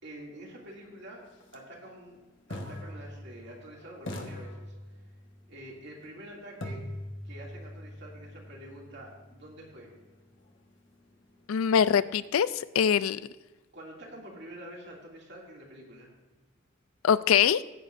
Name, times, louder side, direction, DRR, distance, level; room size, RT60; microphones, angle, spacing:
voice 1, 0.0-1.2 1.5-2.2 2.5-4.7 5.5-6.8 7.2-9.9 13.7-16.1, right 1 dB, 55° right, -2 dB, 2.4 m, -47 dB
sound 1, 1.4-1.5 2.5-3.7 4.1-5.3 6.6-10.5, left 1 dB, 60° left, 1.3 m, -42 dB
voice 2, 11.5-13.2 17.0-17.6, left 8 dB, 85° left, 16 dB, 0.4 m, -23 dB
15.0 x 9.0 x 2.6 m, 1.2 s
head